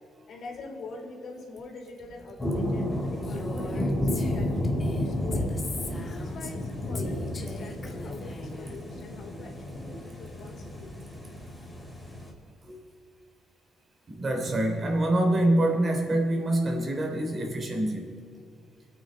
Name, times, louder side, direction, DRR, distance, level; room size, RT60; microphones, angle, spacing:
voice 1, 0.3-5.5 6.0-10.9, left 3 dB, 65° left, 1 dB, 3.3 m, -44 dB
sound 1, 2.4-12.3, left 1 dB, 10° left, 4.5 m, -32 dB
Female speech woman speaking, 3.2-6.6 6.9-8.7, left 3 dB, 40° left, 1.6 m, -40 dB
voice 2, 14.1-18.2, right 1 dB, 40° right, 3 dB, 3.3 m, -26 dB
26.5 x 9.1 x 4.6 m, 2.3 s
cardioid pair, 90°, 0 cm